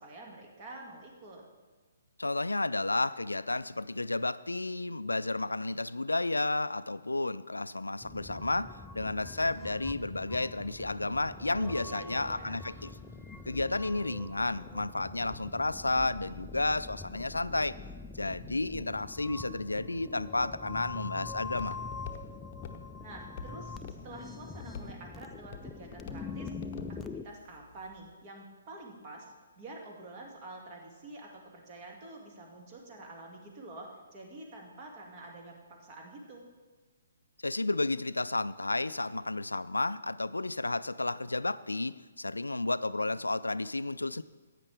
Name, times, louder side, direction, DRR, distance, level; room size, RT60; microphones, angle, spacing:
voice 1, 0.0-1.4 11.4-12.6 23.0-23.8 24.0-26.5 26.9-36.5, right 2 dB, 30° right, 0 dB, 2.1 m, -47 dB
voice 2, 2.2-12.9 13.5-17.8 18.1-21.8 37.4-44.2, left 2 dB, 80° left, 16 dB, 0.4 m, -32 dB
sound 1, 8.0-27.2, left 4 dB, 10° left, 0.4 m, -44 dB
sound 2, 9.9-14.7, right 2 dB, 75° right, 1.8 m, -56 dB
Walk footsteps, 21.5-28.1, left 6 dB, 35° left, 0.9 m, -49 dB
15.5 x 9.0 x 3.4 m, 1.3 s
figure-of-eight pair, 130°, 0 cm